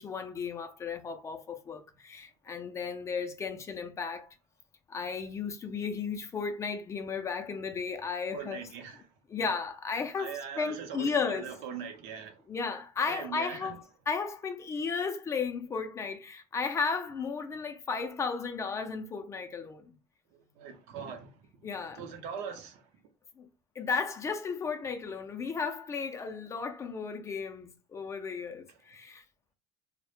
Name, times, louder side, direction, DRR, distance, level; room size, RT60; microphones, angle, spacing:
voice 1, 0.0-4.3 4.9-8.6 9.3-11.5 12.5-19.9 21.6-22.0 23.4-23.5 23.8-29.2, left 5 dB, 25° left, 0.4 m, -34 dB
voice 2, 8.3-9.0 10.2-12.4 13.1-13.8 20.3-22.8, right 7 dB, 70° right, 0.6 m, -41 dB
2.1 x 2.0 x 2.9 m
cardioid pair, 120°, 12 cm